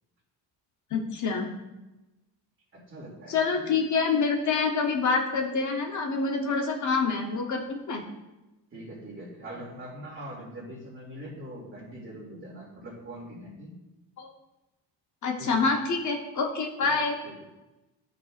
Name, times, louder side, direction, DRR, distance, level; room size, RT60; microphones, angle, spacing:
voice 1, 0.9-1.5 3.3-8.0 14.2-14.3 15.2-17.2, left 4 dB, 45° left, 2 dB, 1.0 m, -26 dB
voice 2, 2.7-3.7 8.7-13.8 15.4-15.6 16.8-16.9 17.2-17.5, right 1 dB, 30° right, -3 dB, 2.6 m, -42 dB
13.0 x 5.2 x 2.5 m, 1.0 s
cardioid pair, 140°, 41 cm